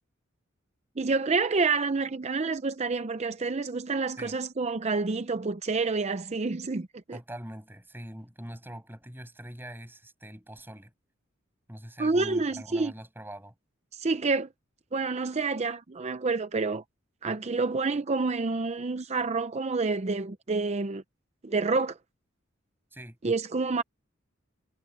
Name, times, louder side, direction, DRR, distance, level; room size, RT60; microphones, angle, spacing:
voice 1, 1.0-7.2 12.0-12.9 13.9-14.5 14.9-16.8 17.2-21.0 21.4-22.0 23.2-23.8, right 3 dB, 35° right, 0.6 m, -28 dB
voice 2, 7.1-10.9 11.7-13.5 22.9-23.2, right 1 dB, 10° right, 6.8 m, -43 dB
head